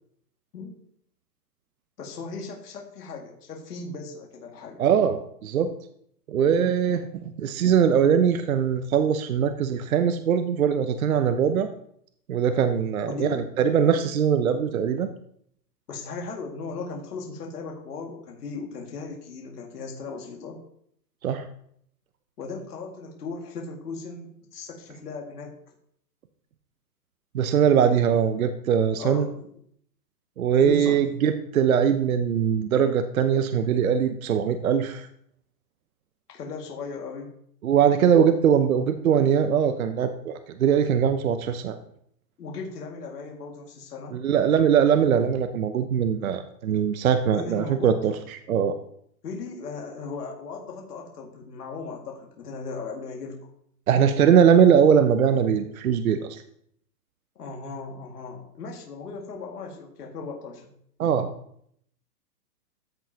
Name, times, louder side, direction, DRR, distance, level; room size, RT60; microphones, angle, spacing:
voice 1, 2.0-4.8 13.0-13.4 15.9-20.6 22.4-25.6 29.0-29.5 30.5-31.1 36.3-37.4 42.4-44.2 47.3-48.0 49.2-53.4 57.4-60.7, left 4 dB, 70° left, 0 dB, 2.1 m, -37 dB
voice 2, 4.8-5.7 6.3-11.7 12.3-15.1 21.2-21.5 27.3-29.3 30.4-35.1 37.6-41.8 44.1-48.7 53.9-56.4 61.0-61.3, right 8 dB, 55° right, 9 dB, 0.7 m, -21 dB
13.5 x 5.2 x 2.8 m, 0.68 s
hypercardioid pair, 170°, 49 cm